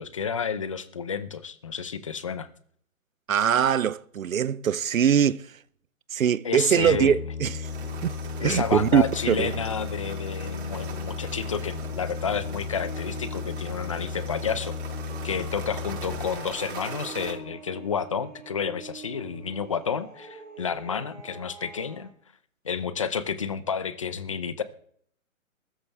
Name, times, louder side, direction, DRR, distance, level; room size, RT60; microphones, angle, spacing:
voice 1, 0.0-2.5 6.4-7.2 8.4-14.8 15.2-22.1 22.6-24.6, left 6 dB, 25° left, 0.7 m, -30 dB
voice 2, 3.3-5.4 6.1-7.7 8.0-8.1 8.4-9.5, right 8 dB, 70° right, 0.8 m, -22 dB
sound 1, 6.8-16.3, left 6 dB, 85° left, 2.6 m, -35 dB
sound 2, 7.6-17.3, right 6 dB, 50° right, 5.3 m, -41 dB
sound 3, 11.6-22.1, right 4 dB, ahead, 3.6 m, -47 dB
22.0 x 13.5 x 3.5 m
hypercardioid pair, 170°, 41 cm